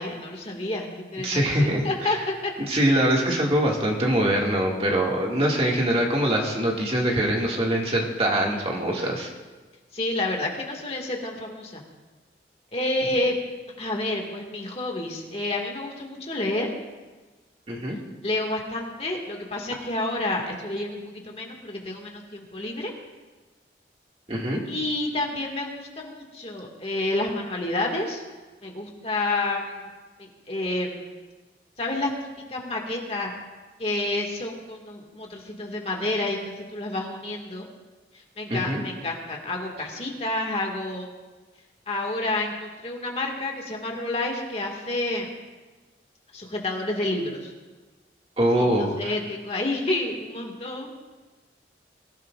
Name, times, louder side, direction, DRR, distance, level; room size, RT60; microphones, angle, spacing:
voice 1, 0.0-2.5 9.9-11.8 12.7-13.4 13.8-16.7 18.2-22.9 24.7-28.2 28.6-29.9 30.2-31.1 31.8-32.1 32.5-33.3 33.8-37.7 38.1-41.1 41.9-45.3 46.3-47.5 48.6-51.0, left 2 dB, 35° left, 0 dB, 2.0 m, -29 dB
voice 2, 1.2-2.1 2.7-9.3 17.7-18.0 24.3-24.6 38.5-38.8 48.4-49.1, right 1 dB, 35° right, -2 dB, 2.2 m, -23 dB
23.5 x 16.0 x 2.5 m, 1.3 s
head